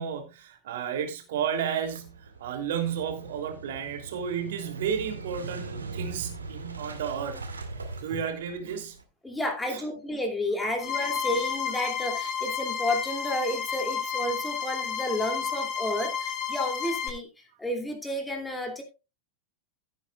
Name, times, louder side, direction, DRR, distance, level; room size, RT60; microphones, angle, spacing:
voice 1, 0.0-7.4 8.0-9.0 9.7-9.8 17.5-17.6, right 8 dB, 55° right, 3.0 m, -32 dB
Motorcycle / Engine starting, 1.8-9.0, right 3 dB, 75° right, 2.1 m, -40 dB
voice 2, 9.2-17.3 17.6-18.8, left 1 dB, 5° left, 2.7 m, -31 dB
sound 1, 10.8-17.1, left 7 dB, 30° left, 2.5 m, -31 dB
16.0 x 9.0 x 2.4 m
figure-of-eight pair, 90°, 0 cm